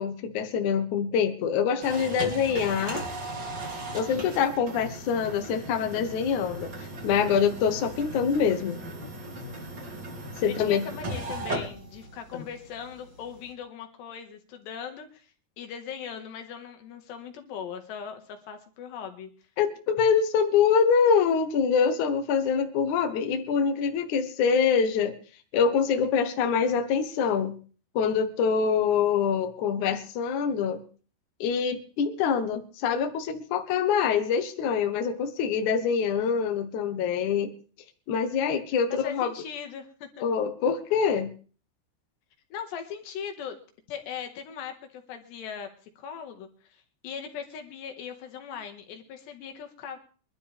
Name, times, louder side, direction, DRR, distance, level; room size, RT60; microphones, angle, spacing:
voice 1, 0.0-3.0 3.9-6.7 7.0-8.8 10.4-10.9 12.3-12.5 19.6-25.2 25.5-27.5 28.0-30.8 31.4-37.5 38.1-39.3 40.2-41.3, left 6 dB, 60° left, 6 dB, 2.2 m, -25 dB
sound 1, 1.8-13.5, right 1 dB, 30° right, 3.0 m, -37 dB
voice 2, 10.5-19.3 38.9-40.2 42.5-43.6 43.9-50.0, left 7 dB, 80° left, 5 dB, 3.8 m, -39 dB
23.5 x 12.0 x 3.4 m, 0.39 s
omnidirectional pair, 4.9 m